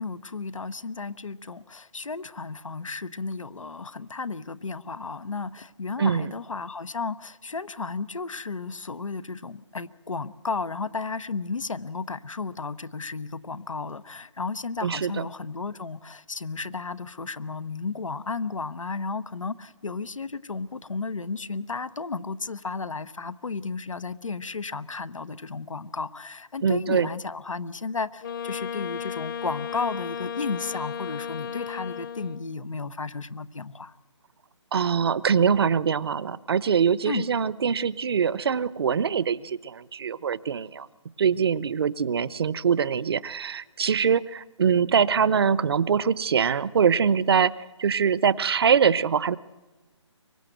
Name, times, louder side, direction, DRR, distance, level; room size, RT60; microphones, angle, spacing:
voice 1, 0.0-33.9 37.0-37.2, left 4 dB, 90° left, 15 dB, 1.0 m, -33 dB
voice 2, 6.0-6.3 14.8-15.1 26.6-27.1 34.7-40.9 41.2-47.5 47.8-49.4, right 7 dB, 50° right, 19 dB, 0.8 m, -23 dB
Wind instrument woodwind instrument, 28.2-32.5, left 8 dB, 40° left, 1.1 m, -34 dB
24.0 x 20.5 x 7.9 m, 1.1 s
figure-of-eight pair, 155°, 16 cm